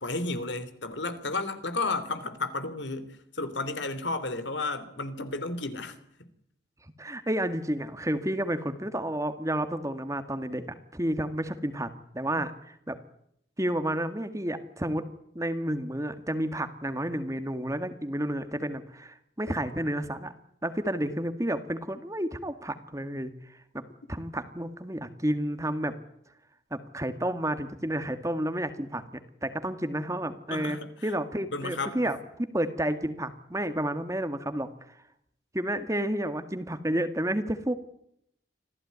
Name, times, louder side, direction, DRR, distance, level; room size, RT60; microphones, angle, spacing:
voice 1, 0.0-6.0 12.2-12.4 30.5-30.9 31.5-32.0, left 3 dB, 75° left, 11 dB, 3.2 m, -32 dB
voice 2, 7.0-11.9 12.1-13.0 13.6-15.0 15.4-20.3 20.6-23.3 24.1-25.9 26.7-29.0 29.4-34.7 35.5-37.7, right 1 dB, 15° right, 9 dB, 2.0 m, -31 dB
26.5 x 16.5 x 9.6 m, 0.73 s
head